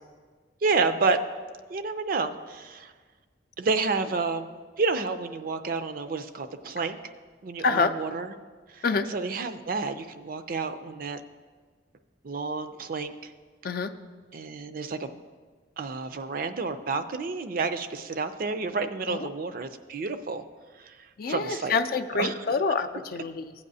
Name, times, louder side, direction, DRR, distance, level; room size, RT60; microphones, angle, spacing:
voice 1, 0.6-1.2 1.7-2.9 3.6-7.0 7.4-8.3 8.7-8.8 9.1-11.2 12.2-13.3 14.3-15.2 15.8-20.4 20.8-20.9 21.3-21.8 22.2-22.3, right 4 dB, 50° right, 10 dB, 0.5 m, -30 dB
voice 2, 7.6-8.0 8.8-9.1 13.6-13.9 19.1-19.3 21.2-23.5, left 4 dB, 55° left, 8 dB, 0.4 m, -27 dB
15.5 x 8.5 x 2.7 m, 1.5 s
head